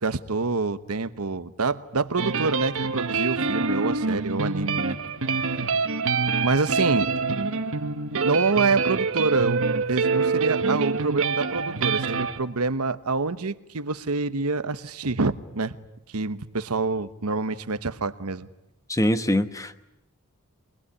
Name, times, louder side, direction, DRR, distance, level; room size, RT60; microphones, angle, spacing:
voice 1, 0.0-5.0 5.4-5.7 6.4-7.1 8.2-9.6 9.9-15.8 16.1-18.5, right 3 dB, 80° right, 13 dB, 1.1 m, -26 dB
sound 1, 2.2-12.4, right 4 dB, 65° right, 1.5 m, -25 dB
voice 2, 18.9-19.8, left 1 dB, 15° left, 11 dB, 1.1 m, -23 dB
24.5 x 22.0 x 9.8 m, 0.88 s
head